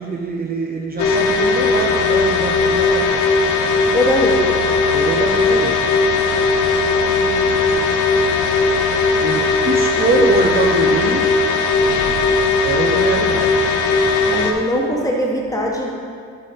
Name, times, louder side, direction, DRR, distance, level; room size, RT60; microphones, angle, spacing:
voice 1, 0.0-3.3 4.9-6.0 9.2-11.4 12.6-13.6, right 4 dB, 30° right, 1 dB, 0.6 m, -23 dB
sound 1, 1.0-14.5, left 4 dB, 75° left, 0.8 m, -17 dB
voice 2, 3.9-4.6 7.1-7.6 14.3-15.9, equal, 10° left, -2 dB, 1.3 m, -21 dB
7.6 x 4.0 x 5.3 m, 2.1 s
cardioid pair, 90°, 30 cm